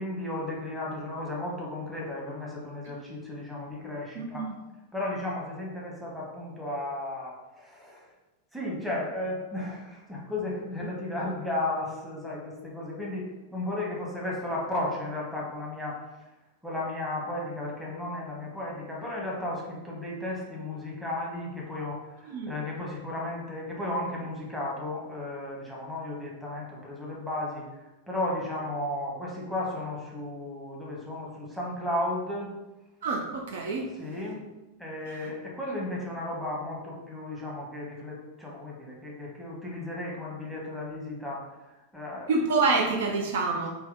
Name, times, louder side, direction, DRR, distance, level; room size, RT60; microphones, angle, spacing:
voice 1, 0.0-4.5 4.9-8.1 8.5-16.0 16.6-32.5 34.0-34.4 34.8-42.3 43.5-43.7, left 1 dB, 5° right, -5 dB, 1.2 m, -34 dB
voice 2, 4.1-4.5 22.3-22.5 33.0-33.9 42.3-43.7, right 3 dB, 55° right, 0 dB, 0.5 m, -27 dB
3.4 x 3.0 x 3.6 m, 1.0 s
figure-of-eight pair, 90°, 0 cm